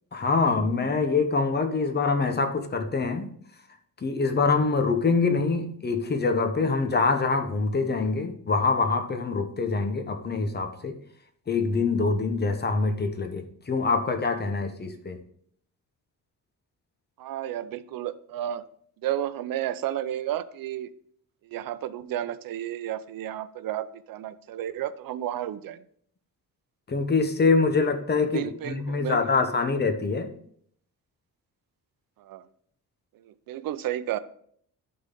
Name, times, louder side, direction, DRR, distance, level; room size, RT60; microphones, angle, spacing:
voice 1, 0.1-3.3 4.0-11.0 11.5-15.2 26.9-30.3, left 4 dB, 30° left, 0.9 m, -25 dB
voice 2, 17.2-18.6 19.0-20.9 21.4-25.8 28.3-29.3 32.2-32.4 33.1-34.2, right 12 dB, 80° right, 0.5 m, -32 dB
11.5 x 3.9 x 3.8 m
cardioid pair, 130°, 34 cm